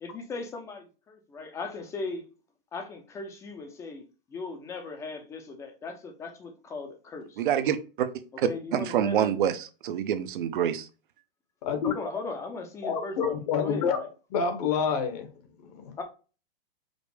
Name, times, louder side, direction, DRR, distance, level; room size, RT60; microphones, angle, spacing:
voice 1, 0.0-2.2 2.7-4.0 4.3-7.4 8.4-9.3 11.8-14.1 16.0-16.1, left 3 dB, 10° left, 0.6 m, -38 dB
voice 2, 7.4-8.1 8.4-10.9, right 9 dB, 60° right, 0.7 m, -27 dB
voice 3, 11.6-11.9 12.8-14.0 14.3-15.3 15.6-15.9, left 6 dB, 40° left, 0.9 m, -28 dB
5.2 x 2.0 x 4.7 m
hypercardioid pair, 155°, 29 cm